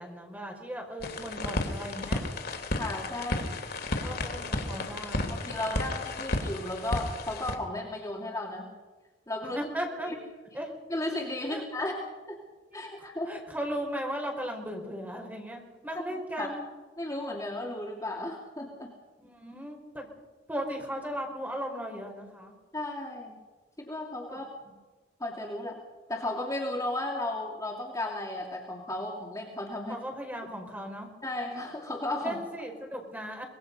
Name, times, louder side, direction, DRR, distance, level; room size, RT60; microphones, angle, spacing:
voice 1, 0.0-2.3 3.3-3.4 4.0-5.4 9.5-10.1 10.5-10.7 11.5-11.6 12.7-12.8 13.2-16.6 19.2-20.1 20.5-22.5 24.3-24.4 29.9-31.1 32.2-33.4, equal, 10° right, 2 dB, 5.1 m, -37 dB
sound 1, 1.0-7.6, left 2 dB, 60° left, 2.9 m, -33 dB
voice 2, 2.8-3.4 5.3-8.7 9.3-9.6 10.0-10.2 10.9-11.9 12.3-12.4 12.7-13.4 16.4-16.5 17.0-18.9 22.7-23.4 23.8-24.4 25.2-25.8 26.1-30.0 31.2-32.4, left 1 dB, 20° left, -1 dB, 2.6 m, -34 dB
24.5 x 20.5 x 5.5 m, 1.3 s
head